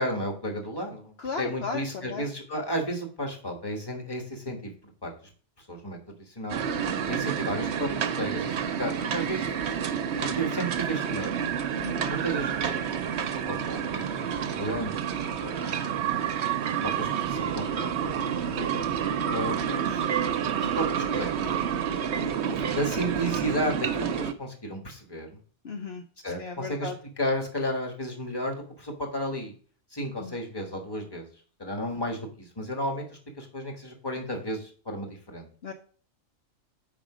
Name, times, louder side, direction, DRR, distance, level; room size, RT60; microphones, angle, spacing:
voice 1, 0.0-5.1 5.6-6.6 7.1-9.5 10.2-11.3 12.1-12.8 13.1-14.3 14.6-16.0 16.8-18.3 19.3-20.1 20.5-21.5 22.5-25.4 26.2-26.9 27.2-29.5 29.9-31.3 31.6-35.5, equal, 20° left, 2 dB, 1.6 m, -33 dB
voice 2, 1.2-2.3 6.9-7.2 11.8-12.1 18.6-18.9 25.6-27.0 30.2-30.3 35.6-35.7, left 4 dB, 60° left, 4 dB, 1.0 m, -36 dB
sound 1, 6.5-24.3, right 8 dB, 70° right, 1.0 m, -29 dB
7.5 x 5.2 x 4.9 m, 0.43 s
omnidirectional pair, 1.2 m